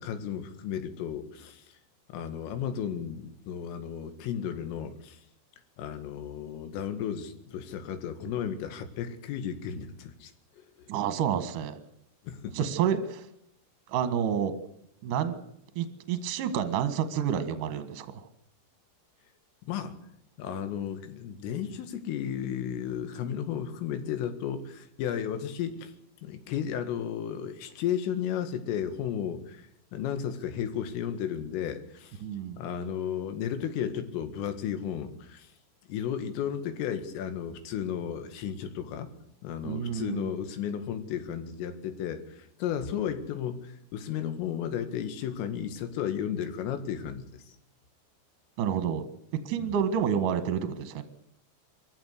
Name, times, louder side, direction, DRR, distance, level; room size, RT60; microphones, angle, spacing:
voice 1, 0.0-1.6 2.1-5.2 5.8-10.3 12.3-12.6 19.7-20.0 20.4-25.9 26.2-29.6 29.9-32.2 32.6-35.5 35.9-39.1 39.4-47.3 49.6-49.8, left 9 dB, 80° left, 9 dB, 4.5 m, -34 dB
voice 2, 10.9-11.8 12.5-13.3 13.9-14.5 15.0-15.4 15.8-18.3 32.2-32.6 39.6-40.3 48.6-49.1 49.5-51.0, right 8 dB, 55° right, 9 dB, 2.6 m, -29 dB
24.5 x 14.5 x 8.2 m, 0.76 s
omnidirectional pair, 5.9 m